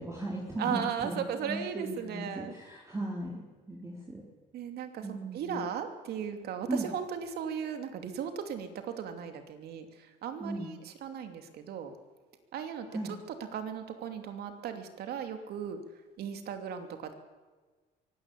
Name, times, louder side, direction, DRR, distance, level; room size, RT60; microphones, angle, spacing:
voice 1, 0.0-4.2 5.0-5.7 6.7-6.9 10.4-10.7 12.9-13.1, right 2 dB, 15° right, -2 dB, 3.9 m, -37 dB
voice 2, 0.6-2.5 4.5-11.9 12.5-13.2 13.5-15.8 16.2-17.1, right 7 dB, 70° right, 7 dB, 2.9 m, -37 dB
23.5 x 17.5 x 8.5 m, 1.4 s
cardioid pair, 110°, 17 cm